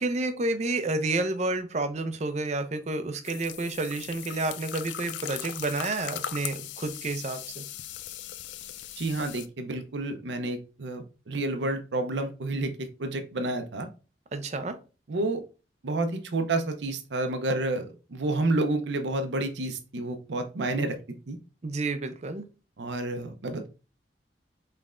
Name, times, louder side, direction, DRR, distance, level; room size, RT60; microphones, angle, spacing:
voice 1, 0.0-7.6 14.3-14.8 21.6-22.4, right 2 dB, 40° right, 10 dB, 0.5 m, -30 dB
sound 1, 3.2-9.5, left 11 dB, 85° left, 0.4 m, -39 dB
voice 2, 9.0-13.9 15.1-15.4 15.8-21.0 21.3-21.4 22.8-23.7, right 2 dB, 85° right, 7 dB, 0.6 m, -30 dB
5.3 x 3.3 x 2.4 m, 0.33 s
head